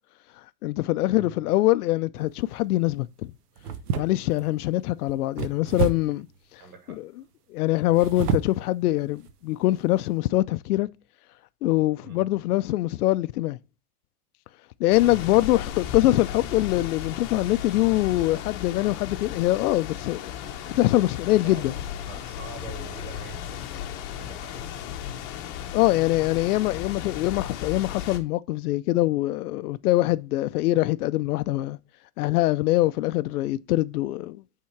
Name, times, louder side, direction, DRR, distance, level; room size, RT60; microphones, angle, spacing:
voice 1, 0.6-3.1 4.0-6.3 7.5-10.9 11.6-13.6 14.8-20.3 20.7-21.7 25.7-31.8 32.2-34.4, left 17 dB, 75° left, 0.5 m, -23 dB
sound 1, 2.2-2.5 3.6-4.5 5.4-6.2 7.8-8.6 9.2-9.3 9.8-10.0, right 6 dB, 90° right, 1.0 m, -29 dB
voice 2, 6.6-7.0 12.0-12.2 15.2-15.4 21.4-24.9, right 4 dB, 75° right, 2.9 m, -45 dB
sound 2, 14.9-28.2, left 10 dB, 35° left, 0.8 m, -35 dB
8.6 x 3.7 x 4.5 m
supercardioid pair, 160°, 45 cm